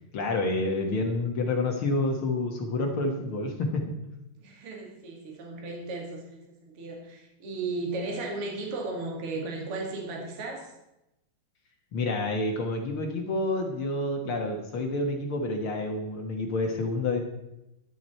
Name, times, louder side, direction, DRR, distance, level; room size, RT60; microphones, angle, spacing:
voice 1, 0.1-3.8 11.9-17.2, left 2 dB, 60° left, 1 dB, 1.3 m, -28 dB
voice 2, 4.4-10.7, right 3 dB, 40° right, 1 dB, 2.8 m, -35 dB
13.0 x 10.5 x 4.4 m, 0.89 s
omnidirectional pair, 4.6 m